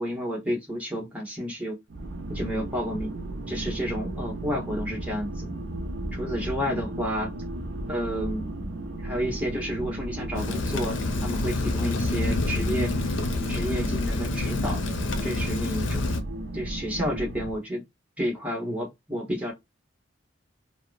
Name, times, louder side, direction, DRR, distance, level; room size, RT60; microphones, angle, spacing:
voice 1, 0.0-1.8 2.3-3.2 3.5-5.5 6.1-7.3 7.9-8.5 9.0-12.9 13.5-14.8 15.2-16.1 16.5-17.8 18.2-19.5, equal, 10° right, 1.0 m, -31 dB
sound 1, 1.9-17.6, right 1 dB, 65° right, 0.5 m, -35 dB
Rain, 10.3-16.2, left 2 dB, 85° left, 0.6 m, -28 dB
2.8 x 2.1 x 2.4 m
head